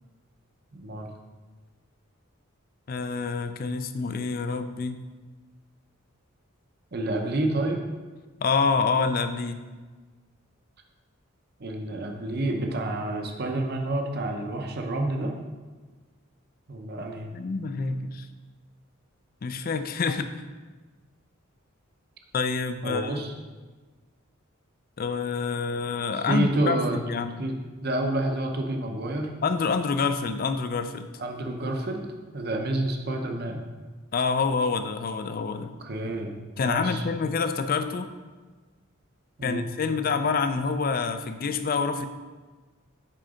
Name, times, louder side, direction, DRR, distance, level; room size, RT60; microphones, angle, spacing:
voice 1, 0.7-1.1 6.9-7.8 11.6-15.3 16.7-17.3 22.8-23.3 26.1-27.0 27.4-27.5 27.8-29.3 31.2-33.6 35.8-37.0 39.4-39.7, right 1 dB, 45° right, 3 dB, 0.7 m, -29 dB
voice 2, 2.9-5.0 8.4-9.6 17.3-18.3 19.4-20.4 22.3-23.3 25.0-27.5 29.4-31.1 34.1-35.7 36.6-38.1 39.4-42.1, left 4 dB, 40° left, 9 dB, 0.4 m, -27 dB
7.5 x 3.8 x 5.0 m, 1.4 s
head